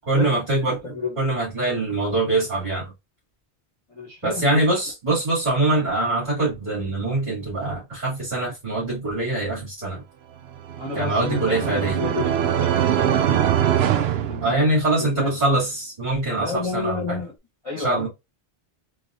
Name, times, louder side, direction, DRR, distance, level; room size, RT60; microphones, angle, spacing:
voice 1, 0.0-0.8 1.2-2.9 4.2-10.0 10.9-12.0 14.4-17.2 17.8-18.1, right 2 dB, 40° right, 2.3 m, -23 dB
voice 2, 0.8-1.2 3.9-4.6 10.7-13.5 14.3-14.6 15.1-15.3 16.4-17.3 17.6-18.1, left 3 dB, 35° left, 1.2 m, -30 dB
sound 1, 10.5-15.1, right 9 dB, 75° right, 0.8 m, -23 dB
4.0 x 2.8 x 2.5 m
omnidirectional pair, 1.1 m